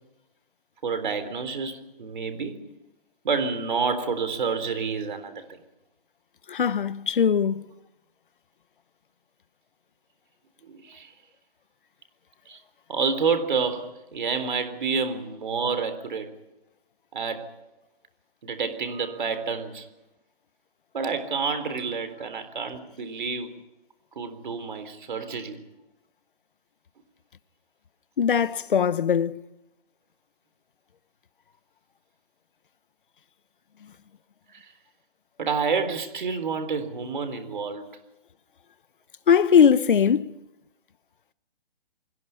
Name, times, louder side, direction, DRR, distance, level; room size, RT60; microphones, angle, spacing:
voice 1, 0.8-2.6 3.2-5.6 10.6-11.1 12.5-12.6 12.9-16.3 17.1-17.5 18.4-19.9 20.9-23.5 24.2-25.6 34.5-34.7 35.4-37.9, right 5 dB, 55° right, 3.8 m, -29 dB
voice 2, 6.5-7.6 28.2-29.4 39.3-40.3, left 7 dB, 60° left, 1.1 m, -20 dB
29.5 x 21.5 x 5.8 m
hypercardioid pair, 180°, 30 cm